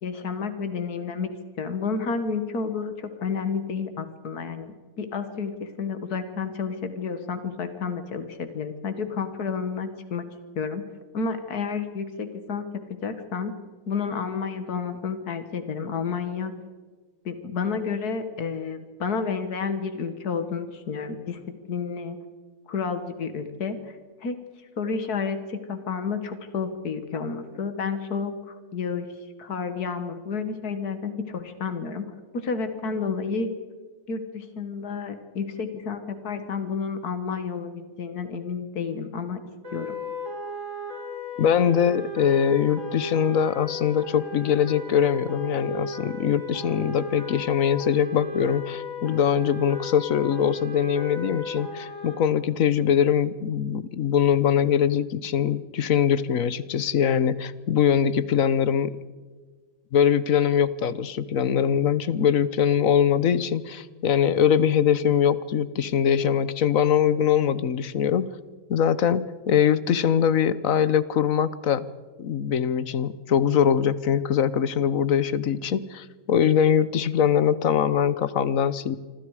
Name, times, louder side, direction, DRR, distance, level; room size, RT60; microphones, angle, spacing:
voice 1, 0.0-1.3 1.6-10.3 10.5-10.8 11.1-12.6 12.9-13.5 13.9-16.5 17.3-21.4 21.7-22.2 22.7-23.8 24.2-24.4 24.8-29.1 29.4-32.0 32.3-33.5 34.1-39.4 39.7-40.0, left 5 dB, 80° left, 9 dB, 2.1 m, -30 dB
sound 1, 39.6-52.1, left 2 dB, 55° right, 5.6 m, -35 dB
voice 2, 41.4-59.0 59.9-68.3 68.7-71.8 72.2-79.0, left 8 dB, 65° left, 16 dB, 1.2 m, -22 dB
26.0 x 26.0 x 4.9 m, 1.4 s
omnidirectional pair, 1.6 m